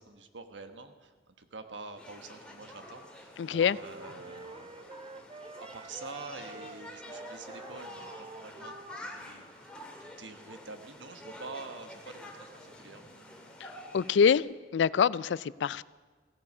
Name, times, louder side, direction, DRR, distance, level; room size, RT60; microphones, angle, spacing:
voice 1, 0.0-5.1 5.6-13.2, right 3 dB, 85° right, 8 dB, 1.3 m, -47 dB
sound 1, 2.0-14.4, left 1 dB, 5° left, 2.0 m, -48 dB
voice 2, 3.4-3.8 13.6-14.4 14.7-15.8, left 6 dB, 75° left, 20 dB, 0.3 m, -25 dB
sound 2, 3.4-9.3, right 3 dB, 30° right, 0.4 m, -48 dB
16.0 x 14.5 x 5.5 m, 1.4 s
head